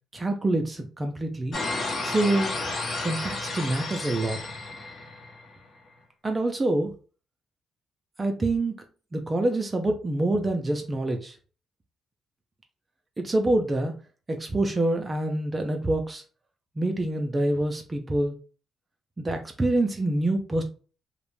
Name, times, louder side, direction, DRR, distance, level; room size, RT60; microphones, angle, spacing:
voice 1, 0.1-1.6 2.0-2.5 3.0-4.4 6.2-6.9 8.2-8.7 9.1-11.3 13.2-13.9 14.3-16.2 16.8-18.4 19.2-20.6, right 2 dB, 25° right, 4 dB, 0.4 m, -26 dB
sound 1, 1.5-5.6, left 2 dB, 45° left, 0.7 m, -32 dB
2.4 x 2.1 x 3.0 m, 0.38 s
cardioid pair, 90°, 0 cm